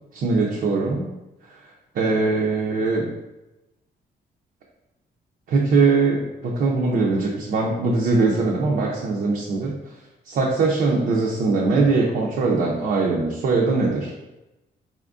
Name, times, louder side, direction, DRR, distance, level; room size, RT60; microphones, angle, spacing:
voice 1, 0.1-1.1 1.9-3.1 5.5-9.8 10.3-14.3, right 3 dB, 60° right, -3 dB, 0.6 m, -21 dB
4.3 x 3.5 x 2.5 m, 1.0 s
wide cardioid pair, 165°, 17 cm